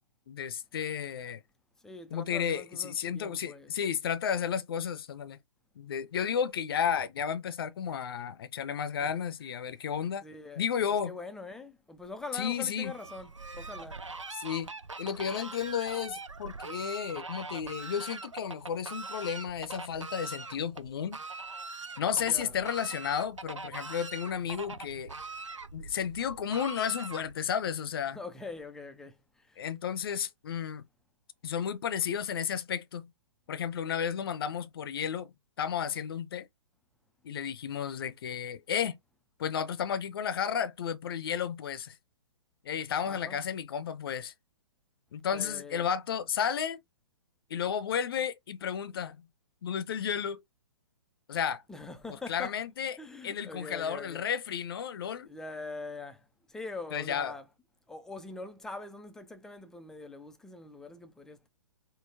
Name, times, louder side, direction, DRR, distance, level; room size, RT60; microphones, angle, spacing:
voice 1, 0.3-1.4 2.1-5.4 5.8-10.2 10.6-11.1 12.3-12.9 14.4-14.7 15.0-21.2 22.0-25.1 25.7-28.2 29.6-30.8 31.4-33.1 33.5-36.5 37.2-39.0 39.4-41.9 42.6-44.3 45.1-46.8 47.5-49.3 49.6-50.4 51.3-51.6 52.3-53.0 53.2-55.3 56.9-57.3, left 8 dB, 50° left, 0.6 m, -32 dB
voice 2, 1.8-3.7 9.0-9.2 10.2-10.7 11.1-14.0 22.2-22.6 28.1-29.7 43.1-43.4 45.3-45.9 51.7-52.5 53.0-54.3 55.2-57.5 57.9-61.5, left 3 dB, 5° left, 0.3 m, -43 dB
Fowl, 12.8-27.5, right 3 dB, 90° right, 0.5 m, -43 dB
3.8 x 2.0 x 2.7 m
figure-of-eight pair, 120°, 15 cm